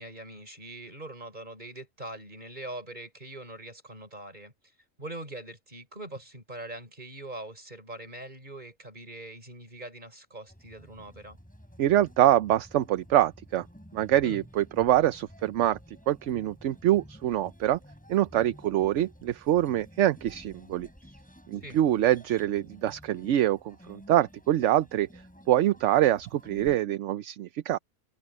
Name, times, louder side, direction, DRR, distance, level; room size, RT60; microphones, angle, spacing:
voice 1, 0.0-4.5 5.0-11.4 14.2-14.4 21.6-21.8, right 1 dB, 30° right, 5.5 m, -42 dB
sound 1, 10.5-26.8, equal, 5° left, 7.1 m, -52 dB
voice 2, 11.8-13.7 13.9-15.8 16.1-17.8 18.1-20.9 21.5-25.1 25.5-27.8, right 13 dB, 65° right, 0.9 m, -25 dB
open air
omnidirectional pair, 1.4 m